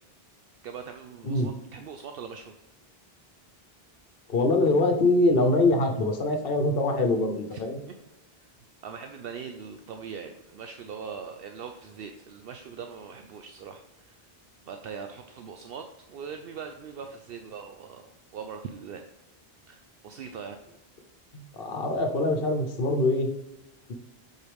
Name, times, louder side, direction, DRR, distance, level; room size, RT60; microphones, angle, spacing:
voice 1, 0.6-2.5 7.5-7.6 8.4-8.5 8.8-14.3 14.7-18.0 18.3-19.0 19.7-20.6, right 6 dB, 70° right, 5 dB, 0.8 m, -41 dB
voice 2, 4.3-7.8 21.3-23.3, left 2 dB, 65° left, 4 dB, 1.2 m, -24 dB
7.9 x 4.6 x 3.4 m, 0.98 s
omnidirectional pair, 1.0 m